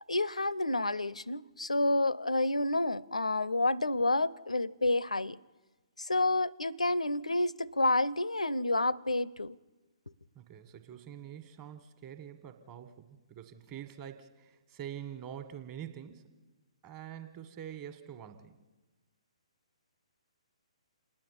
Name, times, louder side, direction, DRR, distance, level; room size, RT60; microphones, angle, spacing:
voice 1, 0.1-5.4 6.0-9.6, left 2 dB, 75° left, 0.5 m, -29 dB
voice 2, 10.3-16.3 16.8-18.6, right 10 dB, 25° right, 1.4 m, -45 dB
27.5 x 9.8 x 10.0 m
figure-of-eight pair, 130°, 3 cm